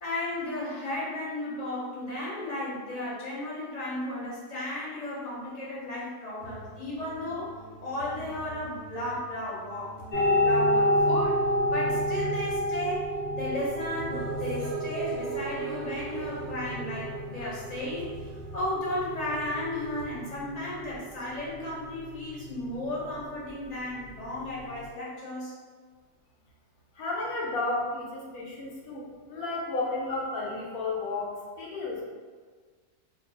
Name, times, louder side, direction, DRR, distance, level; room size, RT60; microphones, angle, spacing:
voice 1, 0.0-7.5 7.8-11.4 11.7-25.5, left 1 dB, 30° left, -8 dB, 0.9 m, -34 dB
sound 1, 6.4-20.0, right 5 dB, 65° right, 0.6 m, -41 dB
sound 2, 10.1-24.9, equal, 50° left, 0.5 m, -30 dB
voice 2, 27.0-32.0, left 2 dB, 70° left, -3 dB, 1.1 m, -32 dB
2.7 x 2.3 x 3.7 m, 1.5 s
omnidirectional pair, 1.6 m